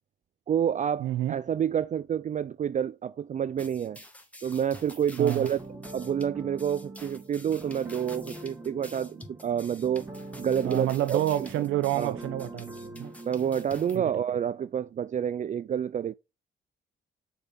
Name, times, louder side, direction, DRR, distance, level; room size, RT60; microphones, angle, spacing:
voice 1, 0.5-4.0 4.4-5.6 5.9-10.1 10.4-11.5 12.0-12.2 13.3-16.1, right 8 dB, 40° right, 0.4 m, -28 dB
voice 2, 1.0-1.4 5.2-5.5 10.6-13.1 13.9-14.1, right 13 dB, 90° right, 0.8 m, -29 dB
sound 1, 3.6-14.0, left 1 dB, 5° left, 2.4 m, -49 dB
sound 2, 5.6-14.1, right 2 dB, 15° right, 2.0 m, -43 dB
6.8 x 5.5 x 4.2 m
cardioid pair, 90°, 20 cm